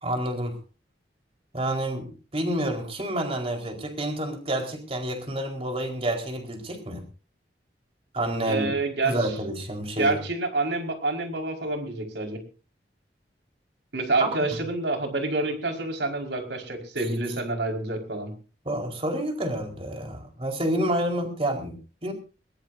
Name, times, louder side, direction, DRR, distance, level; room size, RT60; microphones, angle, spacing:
voice 1, 0.0-0.6 1.5-7.0 8.1-8.7 9.0-10.2 14.2-14.3 18.6-22.1, right 1 dB, 35° right, 3 dB, 4.5 m, -29 dB
voice 2, 8.5-9.3 10.0-12.4 13.9-18.3, right 2 dB, 85° right, 3 dB, 5.1 m, -28 dB
21.5 x 19.5 x 2.7 m, 0.37 s
head